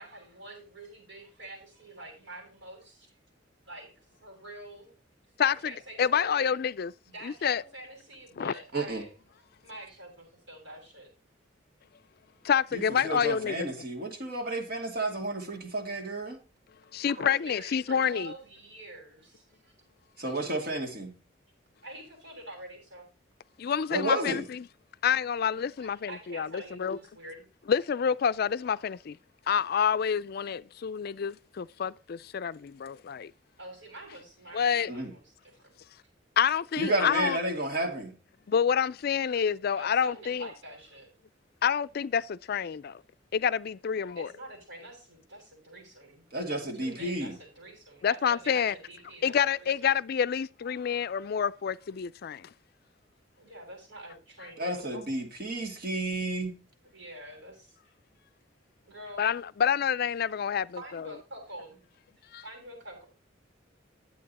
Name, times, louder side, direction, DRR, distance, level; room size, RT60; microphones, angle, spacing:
voice 1, 0.0-3.1 3.6-3.9 4.2-4.9 5.4-6.5 7.1-9.1 9.6-11.1 17.0-19.7 21.8-23.1 25.8-27.5 33.6-35.7 39.7-41.1 44.2-49.9 53.4-55.1 56.9-57.9 58.8-59.3 60.8-61.8 62.4-63.1, right 1 dB, 80° right, 7.3 m, -46 dB
voice 2, 5.4-5.7 6.0-6.9 7.2-7.6 8.4-8.5 12.5-13.7 16.9-18.3 23.6-24.7 25.0-27.0 27.7-29.1 29.5-33.3 34.5-34.9 36.4-37.4 38.5-40.5 41.6-42.9 43.3-44.3 48.0-48.7 49.2-52.4 59.2-61.1 62.3-62.4, left 7 dB, 55° left, 0.4 m, -28 dB
voice 3, 12.7-16.4 20.2-21.1 23.9-24.4 34.9-35.1 36.8-38.1 46.3-47.4 54.6-56.5, right 1 dB, 50° right, 2.2 m, -31 dB
11.0 x 8.4 x 4.1 m
head